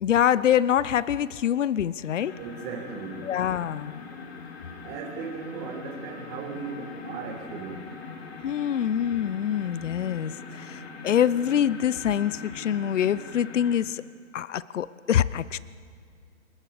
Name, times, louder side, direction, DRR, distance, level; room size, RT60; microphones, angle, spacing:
voice 1, 0.0-2.3 3.2-4.0 8.4-14.0 14.3-15.6, left 10 dB, 65° left, 18 dB, 0.7 m, -25 dB
sound 1, 2.2-13.8, left 4 dB, 50° left, 2.9 m, -41 dB
voice 2, 2.4-3.3 4.8-7.9, right 5 dB, 15° right, 2 dB, 2.0 m, -37 dB
27.0 x 20.5 x 5.1 m, 2.2 s
hypercardioid pair, 170°, 40 cm